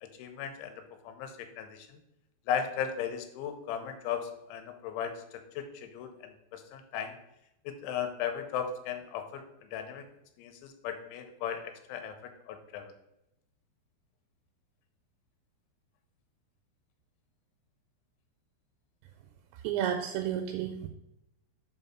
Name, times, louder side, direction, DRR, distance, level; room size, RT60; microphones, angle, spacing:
voice 1, 0.0-0.8 1.0-2.0 2.5-5.1 5.6-7.2 7.7-9.4 9.7-10.0 10.4-12.9, left 8 dB, 85° left, 7 dB, 3.1 m, -36 dB
voice 2, 19.6-20.9, right 10 dB, 85° right, 5 dB, 2.8 m, -31 dB
5.3 x 5.3 x 5.7 m, 0.83 s
omnidirectional pair, 5.3 m